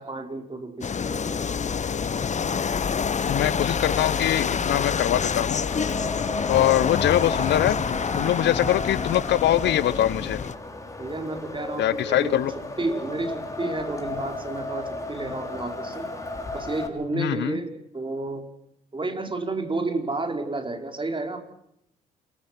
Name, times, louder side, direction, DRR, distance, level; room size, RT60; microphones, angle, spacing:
voice 1, 0.0-1.4 11.0-16.1 16.5-18.5 18.9-21.6, right 2 dB, 25° right, 5 dB, 5.2 m, -31 dB
sound 1, 0.8-10.5, left 6 dB, 35° left, 1.2 m, -27 dB
voice 2, 3.3-5.6 6.5-10.5 11.8-12.5 17.1-17.6, left 13 dB, 65° left, 20 dB, 1.1 m, -23 dB
Wind, 5.7-16.9, left 2 dB, 15° left, 6.1 m, -34 dB
28.0 x 21.5 x 6.2 m, 0.75 s
hypercardioid pair, 50°, 20 cm